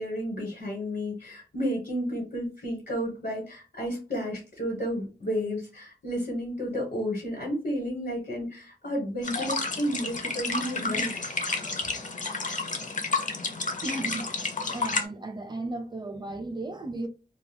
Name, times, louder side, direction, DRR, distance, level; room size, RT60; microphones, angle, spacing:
voice 1, 0.0-11.3, equal, 80° left, 1.1 m, -32 dB
sound 1, 9.2-15.0, left 3 dB, 50° left, 0.5 m, -31 dB
voice 2, 13.8-17.1, right 2 dB, 25° right, 0.5 m, -35 dB
2.3 x 2.2 x 3.3 m
wide cardioid pair, 60°, 16 cm